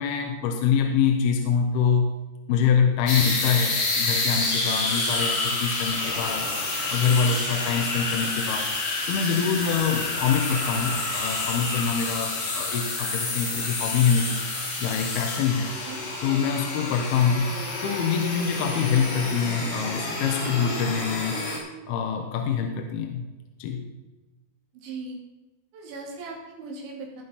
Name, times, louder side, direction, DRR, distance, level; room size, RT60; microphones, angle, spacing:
voice 1, 0.0-2.1 2.5-6.5 6.9-8.7 9.1-14.4 14.8-15.7 16.2-17.5 17.8-21.4 21.9-23.2 23.6-23.8, left 6 dB, 75° left, 4 dB, 2.6 m, -25 dB
sound 1, 3.1-21.6, left 3 dB, 50° left, 4.0 m, -29 dB
voice 2, 24.7-25.2 25.7-27.2, right 3 dB, 85° right, -1 dB, 4.8 m, -38 dB
17.5 x 6.3 x 5.6 m, 1.1 s
omnidirectional pair, 5.1 m